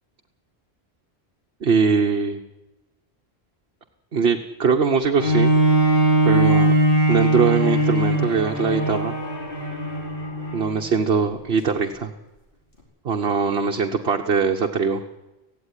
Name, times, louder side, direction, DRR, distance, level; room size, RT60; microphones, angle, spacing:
voice 1, 1.6-2.4 4.1-5.5 6.2-6.7 7.1-9.1 10.5-12.1 13.0-15.0, right 5 dB, 65° right, 3 dB, 1.4 m, -21 dB
Bowed string instrument, 5.2-10.8 11.4-11.5, right 1 dB, 55° left, 5.0 m, -20 dB
17.5 x 16.0 x 9.8 m, 1.0 s
omnidirectional pair, 1.1 m